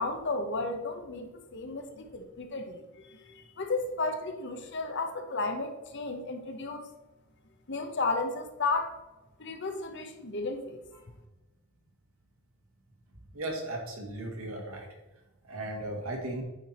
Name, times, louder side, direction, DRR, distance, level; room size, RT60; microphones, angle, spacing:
voice 1, 0.0-6.9 7.7-9.0 9.4-10.8, left 3 dB, 55° left, 6 dB, 0.9 m, -33 dB
voice 2, 13.3-14.9 15.5-16.4, right 1 dB, 70° right, 0 dB, 1.9 m, -36 dB
8.7 x 4.7 x 4.3 m, 1.0 s
head